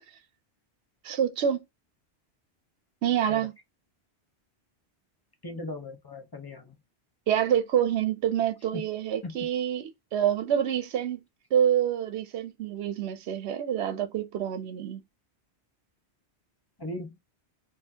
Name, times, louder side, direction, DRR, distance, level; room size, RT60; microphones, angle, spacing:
voice 1, 1.0-1.6 3.0-3.5 7.3-11.2 11.5-15.0, right 9 dB, 80° right, 0.9 m, -27 dB
voice 2, 5.4-6.8 8.7-8.8 9.2-9.3 16.8-17.2, left 2 dB, 25° left, 0.8 m, -38 dB
4.2 x 2.7 x 2.8 m
omnidirectional pair, 1.1 m